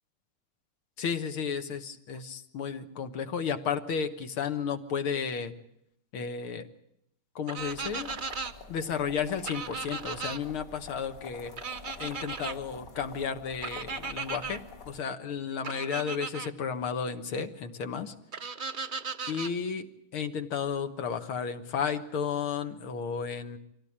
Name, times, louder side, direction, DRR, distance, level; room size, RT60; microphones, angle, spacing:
voice 1, 1.0-5.5 6.1-6.7 7.4-8.1 8.7-11.5 12.0-18.1 19.3-19.9 20.1-23.6, left 6 dB, 75° left, 8 dB, 2.3 m, -33 dB
sound 1, 7.5-8.5 9.5-10.4 11.6-12.5 13.6-14.6 15.6-16.5 18.3-19.5, right 5 dB, 45° right, 0.6 m, -36 dB
sound 2, 7.6-15.0, left 4 dB, 40° left, 2.0 m, -48 dB
25.0 x 17.0 x 8.8 m, 0.76 s
omnidirectional pair, 2.4 m